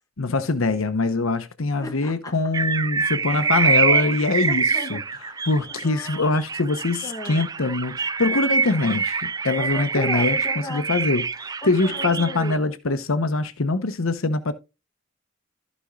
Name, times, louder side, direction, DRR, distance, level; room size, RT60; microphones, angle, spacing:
voice 1, 0.2-5.0 5.5-10.4 10.7-14.5, left 3 dB, 75° left, 1.0 m, -23 dB
voice 2, 1.8-2.3 3.3-6.3 7.0-7.5 9.6-10.9 11.6-12.6, left 1 dB, 15° left, 1.8 m, -37 dB
sound 1, 2.5-12.6, right 5 dB, 20° right, 0.3 m, -25 dB
14.5 x 5.3 x 2.4 m
head